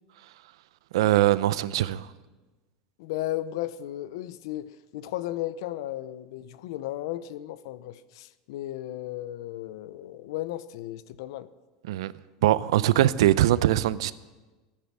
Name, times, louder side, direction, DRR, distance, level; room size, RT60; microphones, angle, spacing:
voice 1, 0.9-2.1 11.9-12.1 12.4-14.1, right 14 dB, 90° right, 0.5 m, -22 dB
voice 2, 3.0-11.5, left 14 dB, 60° left, 0.6 m, -35 dB
17.0 x 10.0 x 6.0 m
supercardioid pair, 180°, 3 cm